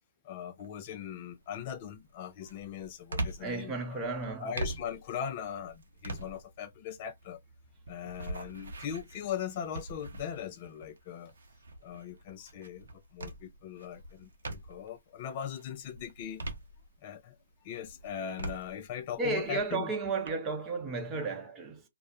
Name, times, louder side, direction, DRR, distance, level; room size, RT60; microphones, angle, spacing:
voice 1, 0.2-7.4 7.9-11.3 11.8-16.4 17.0-17.3 17.6-19.9, left 8 dB, 40° left, 0.4 m, -40 dB
sound 1, 0.6-1.0 1.5-15.0 15.4-17.3 17.7-20.3, right 2 dB, 70° right, 0.7 m, -43 dB
voice 2, 3.4-4.5 19.2-21.8, right 3 dB, 20° right, 0.7 m, -33 dB
2.3 x 2.1 x 2.6 m
figure-of-eight pair, 130°, 0 cm